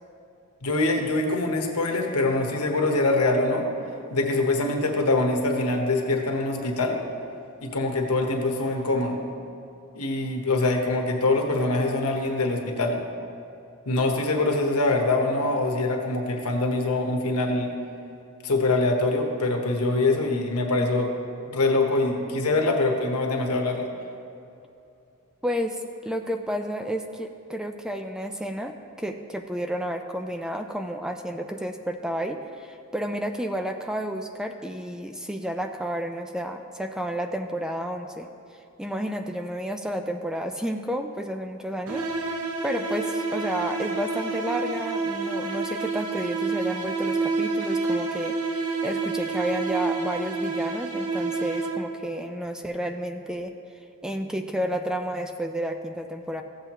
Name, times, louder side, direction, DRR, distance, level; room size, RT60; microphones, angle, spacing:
voice 1, 0.6-3.7 4.1-7.0 7.6-9.2 9.9-13.0 13.9-17.7 18.4-21.1 21.5-23.9, left 2 dB, 80° left, 2 dB, 1.1 m, -24 dB
voice 2, 25.4-38.3 38.8-53.5 54.0-56.4, equal, 5° right, 5 dB, 0.3 m, -31 dB
sound 1, 41.9-52.1, right 3 dB, 75° right, 0.8 m, -28 dB
14.5 x 7.8 x 3.0 m, 2.7 s
head